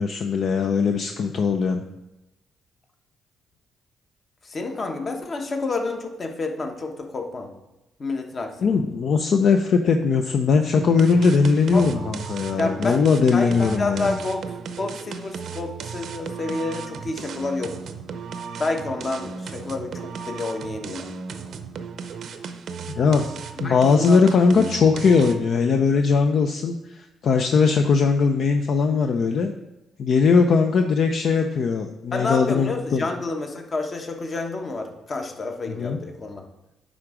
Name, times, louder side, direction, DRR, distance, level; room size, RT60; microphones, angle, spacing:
voice 1, 0.0-1.8 8.6-14.2 23.0-23.2 23.6-29.5 30.0-33.0 35.7-36.0, left 5 dB, 60° left, 6 dB, 0.5 m, -20 dB
voice 2, 4.4-7.5 8.0-8.7 11.7-12.0 12.6-14.4 14.8-17.8 18.6-21.1 23.6-24.3 24.6-24.7 32.1-36.4, left 3 dB, 40° left, 4 dB, 1.1 m, -29 dB
sound 1, 10.8-25.6, right 6 dB, 65° right, 0.6 m, -35 dB
9.4 x 3.7 x 5.0 m, 0.95 s
cardioid pair, 90°, 0 cm